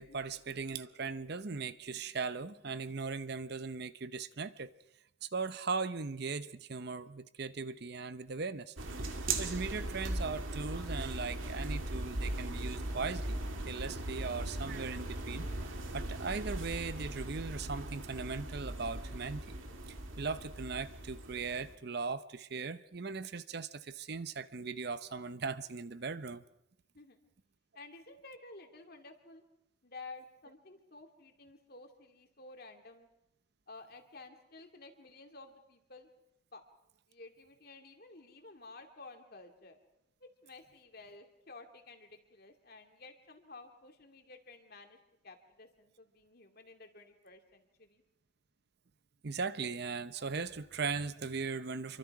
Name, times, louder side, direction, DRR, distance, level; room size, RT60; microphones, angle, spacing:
voice 1, 0.0-4.7 5.2-8.7 9.1-13.4 13.7-19.5 20.2-26.4 49.2-52.0, right 4 dB, 50° right, 14 dB, 0.7 m, -39 dB
sound 1, 8.8-21.7, right 2 dB, 75° right, 2.2 m, -39 dB
voice 2, 27.7-29.4 29.8-33.1 33.7-36.1 36.5-36.6 37.1-39.8 40.2-45.0 45.2-48.0, left 3 dB, 50° left, 5 dB, 2.5 m, -53 dB
27.0 x 24.0 x 4.8 m, 0.82 s
head